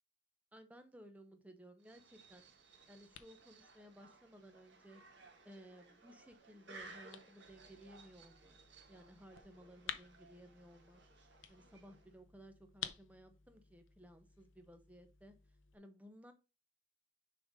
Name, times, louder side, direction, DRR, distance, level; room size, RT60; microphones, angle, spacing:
voice 1, 0.5-5.0 5.4-8.6 8.9-11.0 11.5-15.3 15.7-16.3, equal, 10° right, 8 dB, 0.8 m, -58 dB
sound 1, 1.8-12.2, right 3 dB, 65° right, 1.6 m, -60 dB
sound 2, 2.3-15.8, left 10 dB, 90° left, 0.7 m, -54 dB
6.7 x 3.8 x 5.0 m, 0.30 s
head